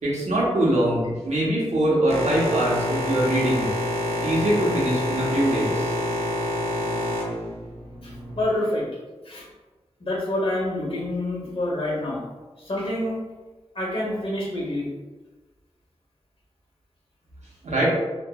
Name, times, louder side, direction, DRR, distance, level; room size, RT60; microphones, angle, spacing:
voice 1, 0.0-3.7 4.2-5.9 17.6-17.9, right 1 dB, 90° right, -6 dB, 0.9 m, -23 dB
Boat Water vehicle, 2.1-8.4, left 1 dB, 65° right, 0.7 m, -27 dB
voice 2, 8.0-8.9 9.2-9.5 10.0-12.2 12.6-13.2 13.7-14.9, left 1 dB, 55° left, -4 dB, 1.1 m, -27 dB
2.9 x 2.5 x 2.3 m, 1.2 s
cardioid pair, 45°, 11 cm